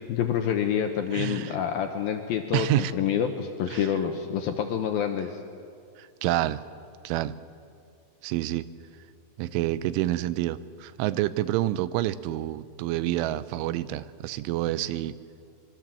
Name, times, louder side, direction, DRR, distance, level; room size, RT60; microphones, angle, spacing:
voice 1, 0.1-5.4, left 8 dB, 75° left, 5 dB, 2.3 m, -27 dB
voice 2, 1.1-1.6 2.5-2.9 3.7-3.9 6.0-6.6 7.0-7.3 8.2-8.6 9.4-15.1, right 14 dB, 90° right, 15 dB, 3.2 m, -28 dB
25.0 x 23.5 x 7.6 m, 2.3 s
omnidirectional pair, 5.4 m